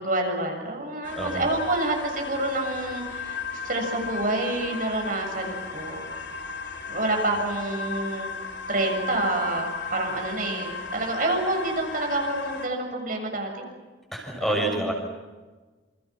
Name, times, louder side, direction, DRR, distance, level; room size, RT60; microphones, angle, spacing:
voice 1, 0.0-6.1 6.9-8.3 8.7-13.7 14.4-14.9, right 2 dB, 50° right, 2 dB, 7.0 m, -28 dB
sound 1, 1.0-12.7, left 4 dB, 70° left, 4.2 m, -35 dB
voice 2, 1.2-1.5 14.1-14.9, right 1 dB, ahead, 1 dB, 6.3 m, -27 dB
29.0 x 29.0 x 6.1 m, 1.3 s
head